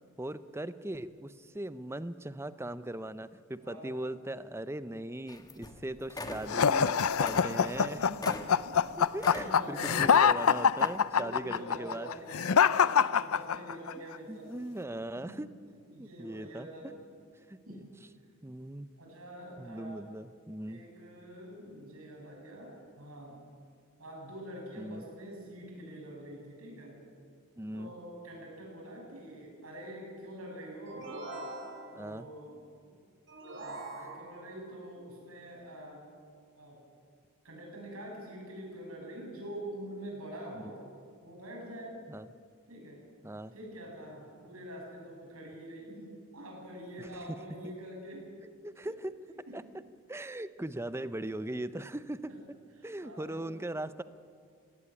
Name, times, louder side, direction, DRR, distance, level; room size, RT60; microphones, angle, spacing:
voice 1, 0.2-8.0 9.0-12.1 14.3-15.5 15.9-16.7 17.5-17.8 18.4-18.9 19.6-20.8 24.8-25.1 27.6-27.9 32.0-32.3 40.5-40.7 42.1-42.3 43.2-43.5 47.0-47.1 48.6-49.1 49.5-49.6 50.1-52.3 52.8-54.0, right 1 dB, 10° right, 14 dB, 0.6 m, -39 dB
voice 2, 3.6-4.0 7.4-7.6 7.9-8.3 8.6-8.8 9.2-10.1 11.2-14.5 15.1-15.4 15.9-16.9 17.6-17.8 19.0-20.2 20.6-23.4 24.0-27.0 27.7-31.1 31.9-32.6 32.8-32.9 33.5-36.0 36.5-36.8 37.4-40.8 41.2-42.0 42.7-43.0 43.5-46.1 46.3-48.2 49.5-49.6 52.3-52.4 53.0-53.5, right 1 dB, 85° right, -1 dB, 7.7 m, -45 dB
sound 1, 5.3-5.8 6.1-6.8 7.1-9.5 9.8-10.3 10.8-11.0, left 2 dB, 20° left, 1.4 m, -42 dB
sound 2, 6.5-13.9, left 7 dB, 85° left, 0.6 m, -25 dB
sound 3, 30.9-32.2 33.3-34.6, right 2 dB, 60° right, 3.4 m, -43 dB
19.0 x 17.0 x 9.9 m, 2.1 s
head